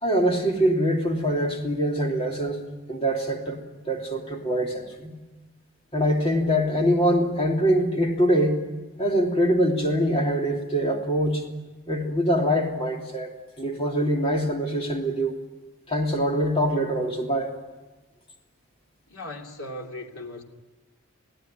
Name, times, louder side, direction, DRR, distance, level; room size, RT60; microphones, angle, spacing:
voice 1, 0.0-2.6 2.9-3.6 3.8-5.1 5.9-8.6 9.0-11.4 11.9-13.3 13.6-15.3 15.9-17.5, equal, 25° left, 3.2 m, -24 dB
voice 2, 19.1-20.4, left 1 dB, 90° left, 2.9 m, -37 dB
28.0 x 17.0 x 9.2 m
head